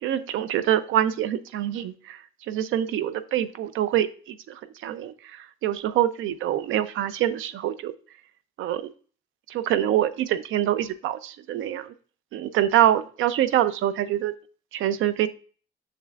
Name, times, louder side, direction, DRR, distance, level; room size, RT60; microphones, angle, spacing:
voice 1, 0.0-7.9 8.6-8.9 9.5-11.9 12.3-14.3 14.7-15.3, right 11 dB, 85° right, 14 dB, 0.6 m, -25 dB
7.3 x 6.7 x 2.4 m, 0.40 s
cardioid pair, 90°, 20 cm